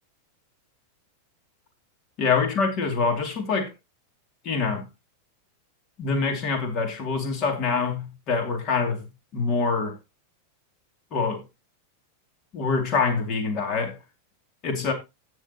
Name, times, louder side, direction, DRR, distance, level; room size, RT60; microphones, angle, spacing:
voice 1, 2.2-3.7 4.4-4.9 6.0-9.0 9.3-10.0 11.1-11.4 12.5-14.0 14.6-14.9, left 4 dB, 45° left, 2.4 m, -25 dB
15.5 x 6.4 x 2.9 m
hypercardioid pair, 115°, 0 cm